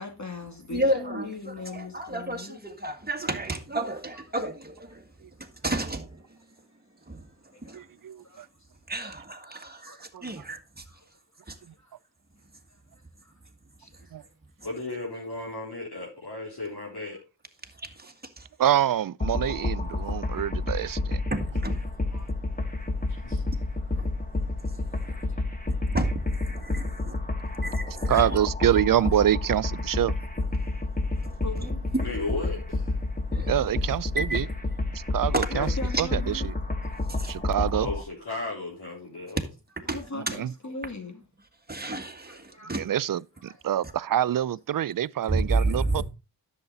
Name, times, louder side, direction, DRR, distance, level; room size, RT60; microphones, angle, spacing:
voice 1, 0.0-2.6 7.5-7.9 8.2-8.7 9.9-10.3 10.9-11.1 11.8-11.9 13.2-13.3 13.8-14.1 22.1-22.3 25.0-25.4 27.2-27.4 31.4-31.8 35.8-36.5 39.9-41.2 42.3-42.7 43.5-43.6 44.3-44.4, left 3 dB, 40° left, 2.6 m, -40 dB
voice 2, 0.7-6.4 7.1-7.9 8.9-10.9 11.5-11.6 13.9-14.1 17.6-18.5 21.3-21.9 23.9-24.1 24.7-25.2 25.9-27.1 27.6-28.4 31.6-31.7 31.9-32.0 33.3-33.8 34.2-34.4 35.3-35.5 35.9-36.0 37.1-37.4 39.9-40.0 40.3-40.4 41.7-42.8 45.3-46.0, right 2 dB, 20° right, 1.9 m, -31 dB
voice 3, 7.7-8.5 10.1-10.3 14.1-14.2 18.6-21.2 28.1-30.1 33.5-34.5 34.9-35.7 36.0-36.4 37.3-37.9 40.1-40.5 42.8-46.0, right 11 dB, 50° right, 0.4 m, -26 dB
voice 4, 14.6-17.2 23.1-23.5 32.0-33.0 35.5-35.7 37.7-39.4, left 2 dB, 65° left, 4.0 m, -35 dB
sound 1, 19.2-38.0, left 2 dB, 20° left, 1.7 m, -30 dB
10.5 x 7.3 x 3.9 m
wide cardioid pair, 65°, 43 cm